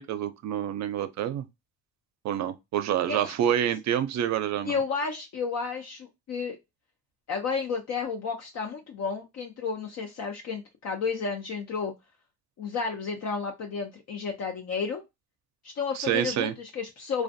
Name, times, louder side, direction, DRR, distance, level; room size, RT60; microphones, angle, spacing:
voice 1, 0.0-1.5 2.2-4.8 15.9-16.5, right 10 dB, 65° right, 0.5 m, -27 dB
voice 2, 3.1-3.5 4.6-6.6 7.3-11.9 12.6-15.0 15.6-17.2, left 5 dB, 60° left, 0.5 m, -32 dB
2.5 x 2.2 x 2.5 m
cardioid pair, 90°, 30 cm